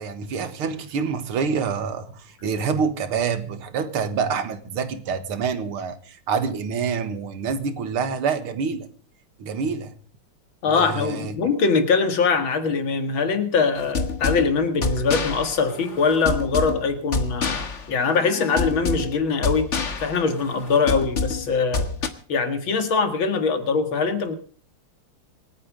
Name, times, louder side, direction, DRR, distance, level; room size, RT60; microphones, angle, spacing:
voice 1, 0.0-8.9 9.4-9.9 10.6-11.4, right 5 dB, 85° right, 2.4 m, -27 dB
voice 2, 10.6-19.7 20.0-21.9 22.3-24.4, left 5 dB, 65° left, 2.7 m, -22 dB
sound 1, 13.8-22.1, left 4 dB, 40° left, 1.6 m, -28 dB
26.5 x 9.3 x 5.1 m
omnidirectional pair, 2.3 m